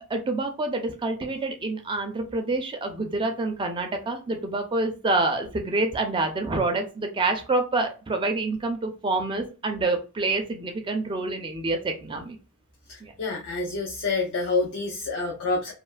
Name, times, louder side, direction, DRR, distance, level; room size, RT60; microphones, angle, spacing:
voice 1, 0.0-12.4 13.0-13.1, right 2 dB, 20° right, 4 dB, 0.4 m, -27 dB
voice 2, 12.9-15.7, left 3 dB, 60° left, 0 dB, 0.5 m, -28 dB
2.6 x 2.2 x 2.4 m, 0.33 s
head